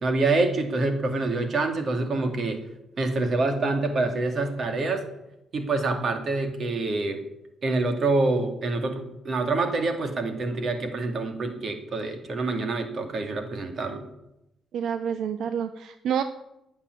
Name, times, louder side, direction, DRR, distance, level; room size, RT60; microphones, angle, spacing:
voice 1, 0.0-2.6 3.0-5.0 5.5-7.2 7.6-14.0, right 3 dB, 45° right, 6 dB, 2.5 m, -26 dB
voice 2, 14.7-16.2, right 8 dB, 75° right, 10 dB, 0.8 m, -28 dB
11.5 x 9.0 x 9.9 m, 0.89 s
cardioid pair, 130°, 0 cm